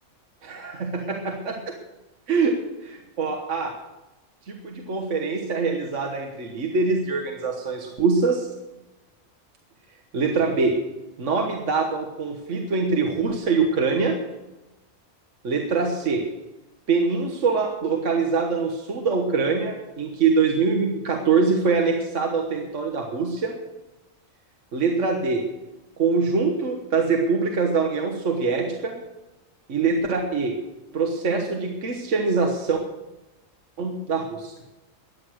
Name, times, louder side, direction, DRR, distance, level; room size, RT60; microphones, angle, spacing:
voice 1, 0.4-1.7 2.3-2.5 2.8-3.7 4.5-8.5 10.1-10.7 11.2-14.1 15.4-16.2 16.9-23.5 24.7-25.4 26.0-28.9 29.7-30.5 30.9-32.8 33.8-34.5, right 4 dB, 65° right, 2 dB, 1.6 m, -24 dB
14.5 x 9.9 x 6.3 m, 1.0 s
omnidirectional pair, 1.4 m